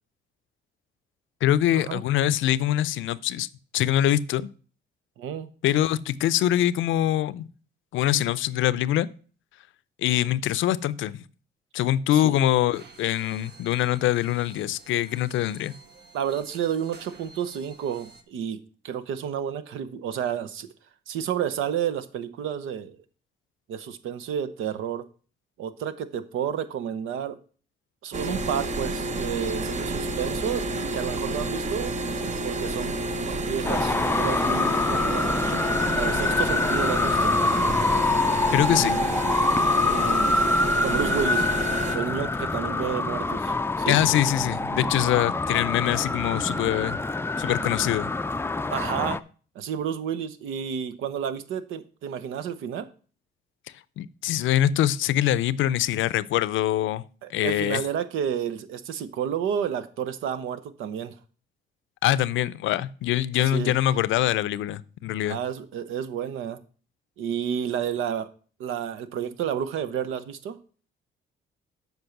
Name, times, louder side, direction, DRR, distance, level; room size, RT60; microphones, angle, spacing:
voice 1, 1.4-3.5 3.7-4.5 5.6-7.5 7.9-9.1 10.0-11.2 11.7-15.7 38.5-39.0 43.9-47.0 47.4-48.1 54.0-57.0 57.3-57.8 62.0-65.4, left 12 dB, 80° left, 17 dB, 0.5 m, -24 dB
voice 2, 5.2-5.5 12.1-12.3 16.1-18.6 18.8-20.7 21.1-23.0 23.7-25.0 25.6-27.4 28.0-31.9 32.4-37.3 39.9-40.4 40.8-41.5 41.9-44.0 48.7-49.2 49.5-52.9 57.2-61.2 63.5-63.7 65.3-66.6 67.2-68.3 68.6-70.6, right 8 dB, 85° right, 11 dB, 0.8 m, -31 dB
sound 1, 12.7-18.2, right 3 dB, 55° right, 1.2 m, -50 dB
sound 2, 28.1-42.0, right 2 dB, 35° right, 0.8 m, -30 dB
Traffic noise roadway noise, 33.6-49.2, left 3 dB, 10° left, 0.4 m, -25 dB
8.0 x 5.4 x 5.8 m, 0.40 s
cardioid pair, 90°, 20 cm